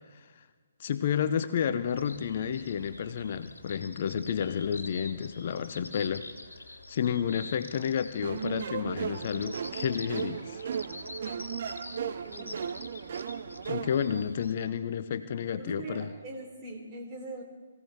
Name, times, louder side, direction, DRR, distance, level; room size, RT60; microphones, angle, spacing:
voice 1, 0.1-0.5 0.8-6.3 6.9-10.6 13.7-16.1, left 8 dB, 45° left, 12 dB, 0.7 m, -31 dB
sound 1, 1.9-14.6, left 2 dB, 80° left, 2.0 m, -46 dB
sound 2, 8.2-14.2, right 7 dB, 50° right, 0.6 m, -36 dB
voice 2, 12.2-12.7 15.5-17.4, right 2 dB, 25° right, 0 dB, 3.7 m, -41 dB
23.5 x 16.5 x 3.6 m, 1.6 s
figure-of-eight pair, 135°, 0 cm